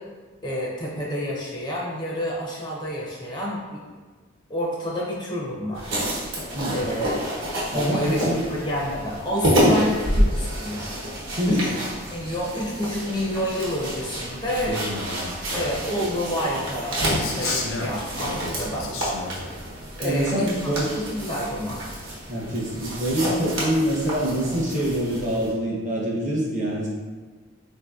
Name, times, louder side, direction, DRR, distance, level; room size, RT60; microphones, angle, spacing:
voice 1, 0.4-3.8 4.5-5.9 6.7-7.3 7.7-8.2 8.5-10.9 11.5-11.7 12.1-14.8 15.5-18.9 20.0-21.8, equal, 20° left, -4 dB, 0.5 m, -28 dB
sound 1, 5.8-25.5, equal, 70° right, 0.8 m, -28 dB
voice 2, 7.7-8.4 11.4-11.7 18.8-18.9 20.0-20.9 22.3-26.9, equal, 40° right, -4 dB, 0.6 m, -25 dB
Male speech man speaking, 14.5-15.8 17.1-19.5, left 3 dB, 75° left, 0.4 m, -32 dB
3.7 x 2.6 x 2.3 m, 1.4 s
head